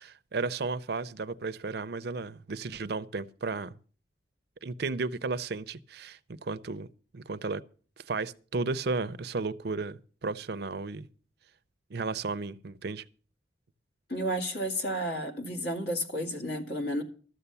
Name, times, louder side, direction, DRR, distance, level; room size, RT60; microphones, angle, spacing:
voice 1, 0.0-3.8 4.6-6.9 7.1-7.6 8.0-11.1 11.9-13.0, right 3 dB, 55° right, 0.5 m, -34 dB
voice 2, 14.1-17.0, equal, 55° left, 2.2 m, -32 dB
13.0 x 7.0 x 6.8 m
head